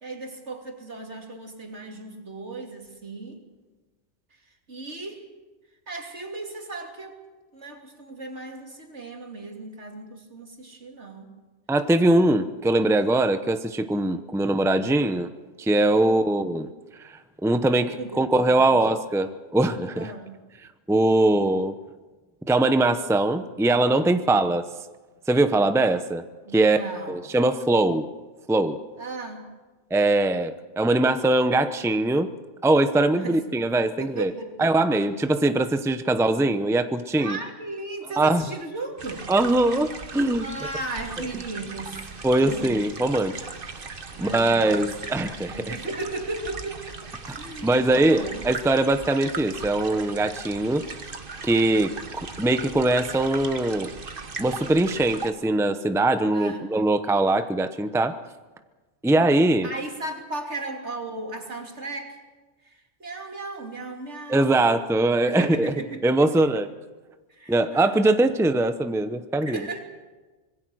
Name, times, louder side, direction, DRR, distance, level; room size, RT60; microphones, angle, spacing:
voice 1, 0.0-3.4 4.7-5.3 5.9-7.2 7.5-11.3 15.9-16.4 18.0-18.9 20.0-20.4 24.3-24.4 26.5-27.2 29.0-29.5 33.1-33.4 34.0-34.7 35.0-35.1 37.2-39.3 40.4-42.1 42.4-42.8 44.1-44.8 45.5-47.0 47.4-48.5 56.3-56.7 59.6-62.2 62.6-64.7 65.3-66.5 67.3-68.0 69.4-69.8, right 2 dB, 70° right, 2 dB, 3.3 m, -36 dB
voice 2, 11.7-15.3 15.6-16.7 17.0-20.1 20.9-21.8 22.5-24.7 25.3-26.2 26.5-26.8 27.1-28.1 28.5-28.8 29.9-32.3 32.6-34.3 34.6-37.4 38.2-38.4 39.3-40.5 42.2-43.4 44.2-45.8 47.6-50.8 51.4-53.9 54.4-58.2 59.0-59.7 64.3-65.7 66.0-66.7 67.5-69.6, right 2 dB, 5° right, 9 dB, 0.8 m, -22 dB
sound 1, 39.0-55.3, right 4 dB, 50° right, 1.5 m, -38 dB
25.0 x 21.5 x 6.4 m, 1.3 s
omnidirectional pair, 1.2 m